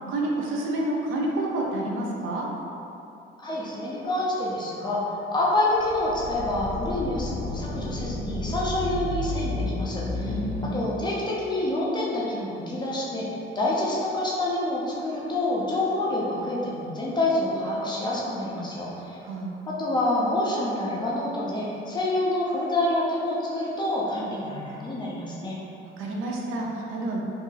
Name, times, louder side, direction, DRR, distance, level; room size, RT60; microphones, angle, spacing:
voice 1, 0.1-2.5 10.2-10.8 19.2-19.5 26.0-27.2, right 2 dB, 90° right, -2 dB, 0.6 m, -29 dB
voice 2, 3.4-10.3 10.7-19.2 19.7-25.6, left 1 dB, 20° left, -5 dB, 0.6 m, -27 dB
sound 1, 5.7-10.7, left 1 dB, 75° left, 0.6 m, -31 dB
2.8 x 2.6 x 3.8 m, 2.8 s
cardioid pair, 145°, 20 cm